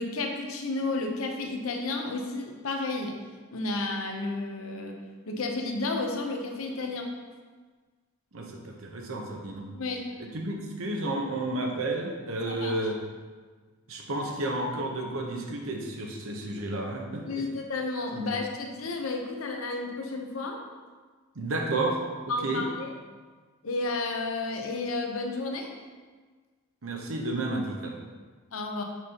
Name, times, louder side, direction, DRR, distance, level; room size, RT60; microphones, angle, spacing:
voice 1, 0.0-3.2 3.5-5.0 5.3-7.1 9.7-10.0 12.5-12.7 17.3-20.6 22.3-22.9 23.6-25.7 28.5-28.8, left 3 dB, 85° left, 3 dB, 0.8 m, -32 dB
voice 2, 8.3-9.7 10.2-13.0 13.9-17.5 18.1-18.3 21.3-22.0 22.2-22.7 26.8-28.0, right 2 dB, 80° right, 1 dB, 0.9 m, -31 dB
6.0 x 5.4 x 2.9 m, 1.4 s
head